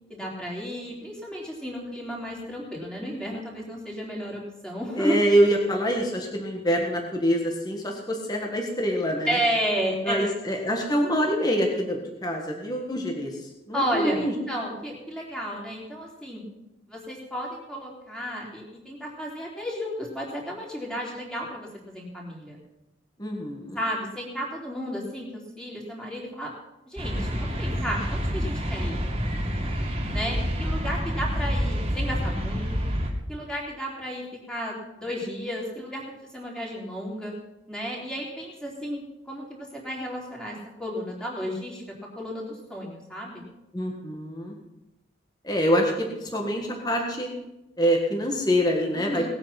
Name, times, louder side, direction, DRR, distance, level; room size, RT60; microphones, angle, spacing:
voice 1, 0.1-5.2 9.3-10.4 13.7-16.4 16.9-22.6 23.8-26.5 26.9-29.0 30.1-32.8 33.3-36.0 36.3-37.4 37.7-41.8 42.2-43.5 48.9-49.3, equal, 5° left, -3 dB, 3.6 m, -32 dB
voice 2, 5.0-9.4 10.0-14.3 23.2-23.8 43.7-44.5 45.4-47.3 47.8-49.3, equal, 20° left, 1 dB, 1.6 m, -25 dB
sound 1, 27.0-33.1, equal, 30° right, 2.4 m, -28 dB
19.0 x 9.0 x 5.9 m, 0.96 s
head